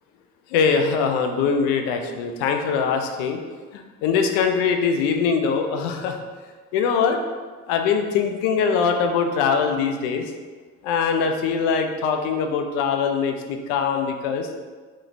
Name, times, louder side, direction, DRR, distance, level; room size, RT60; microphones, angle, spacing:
voice 1, 0.5-3.4 4.0-6.2 6.7-7.2 7.7-10.3 10.8-14.5, left 6 dB, 65° left, 5 dB, 0.5 m, -22 dB
3.7 x 3.1 x 2.6 m, 1.5 s
figure-of-eight pair, 45°, 40 cm